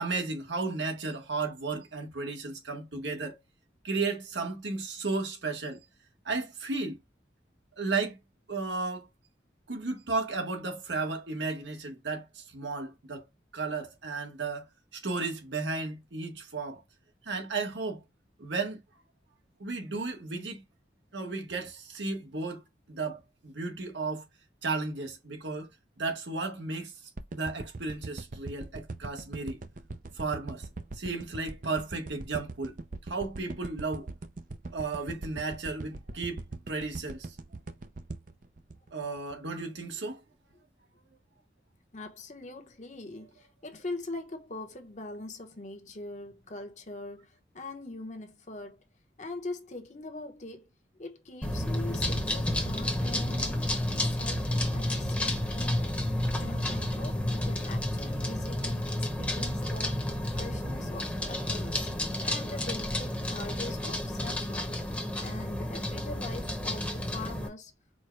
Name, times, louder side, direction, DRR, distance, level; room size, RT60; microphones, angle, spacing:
voice 1, 0.0-3.4 3.8-5.8 6.2-7.0 7.8-8.2 8.5-9.1 9.7-13.2 13.5-16.8 17.2-18.0 18.4-18.8 19.6-20.6 21.1-24.2 24.6-25.7 26.0-26.9 27.3-29.6 30.1-30.7 30.9-32.7 33.1-34.1 34.7-37.4 38.9-40.2, right 3 dB, 85° right, 1.3 m, -34 dB
sound 1, 27.2-39.5 39.9-40.0, right 3 dB, 45° right, 0.6 m, -41 dB
voice 2, 41.9-48.8 49.2-50.7 51.0-56.1 56.4-61.9 62.2-64.9 65.2-67.7, left 2 dB, 40° left, 1.0 m, -42 dB
sound 2, 51.4-67.5, left 1 dB, 5° left, 0.9 m, -31 dB
4.6 x 2.2 x 4.5 m
head